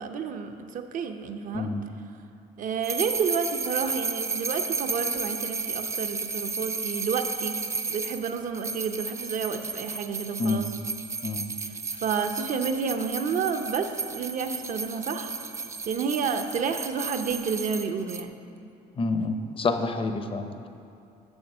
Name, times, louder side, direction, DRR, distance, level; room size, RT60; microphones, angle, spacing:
voice 1, 0.0-1.7 2.6-7.6 7.9-10.7 11.6-15.3 15.8-18.4, right 6 dB, 50° right, 6 dB, 0.7 m, -30 dB
voice 2, 1.5-1.8 10.4-10.6 11.2-11.5 19.0-20.7, left 3 dB, 30° left, 7 dB, 0.7 m, -28 dB
Sleigh Bells Shaking, 2.8-18.2, right 4 dB, 15° right, 0.4 m, -33 dB
7.1 x 6.7 x 6.6 m, 2.7 s
cardioid pair, 110°, 17 cm